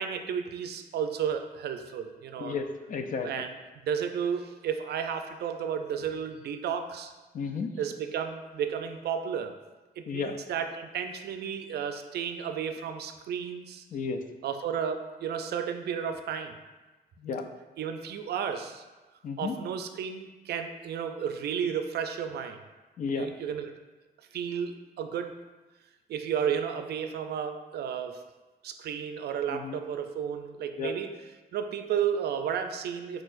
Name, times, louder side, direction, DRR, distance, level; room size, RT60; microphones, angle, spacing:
voice 1, 0.0-2.6 3.2-3.5 3.9-7.1 7.8-9.5 10.0-13.8 14.4-16.6 17.8-18.8 19.4-22.6 23.1-23.7 24.3-25.4 26.1-28.2 28.6-31.1 31.5-33.2, right 8 dB, 85° right, 7 dB, 0.4 m, -33 dB
voice 2, 2.4-3.4 7.3-7.7 10.1-10.4 13.9-14.2 17.2-17.5 19.2-19.5 23.0-23.3 29.5-29.8 30.8-30.9, left 5 dB, 55° left, 6 dB, 0.4 m, -33 dB
4.5 x 4.3 x 2.5 m, 1.2 s
wide cardioid pair, 145°, 16 cm